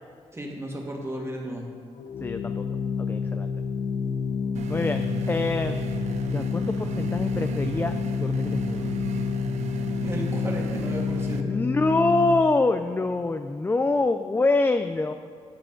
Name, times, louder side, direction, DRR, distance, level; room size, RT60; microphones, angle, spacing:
voice 1, 0.3-1.7 10.0-11.6, equal, 25° right, 0 dB, 1.9 m, -34 dB
Organ, 2.0-12.7, left 5 dB, 85° left, 0.7 m, -29 dB
voice 2, 2.2-2.8 3.1-3.5 4.7-5.9 6.3-8.9 11.4-15.1, left 3 dB, 20° left, 8 dB, 0.4 m, -25 dB
sound 1, 4.5-11.4, right 9 dB, 85° right, 0.5 m, -36 dB
10.5 x 7.3 x 3.9 m, 2.2 s
cardioid pair, 80°, 11 cm